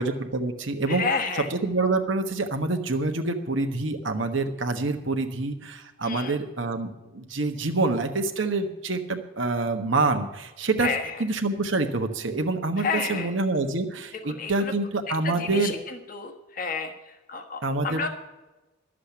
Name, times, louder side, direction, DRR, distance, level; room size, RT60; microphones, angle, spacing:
voice 1, 0.0-1.0 1.3-10.9 11.2-15.8 17.6-18.0, right 3 dB, 70° right, 5 dB, 1.3 m, -26 dB
voice 2, 0.9-1.5 6.0-6.4 10.8-11.2 12.8-13.3 14.3-14.7 15.2-16.9 17.3-18.1, left 5 dB, 45° left, 5 dB, 1.4 m, -30 dB
12.0 x 7.5 x 8.5 m, 1.0 s
head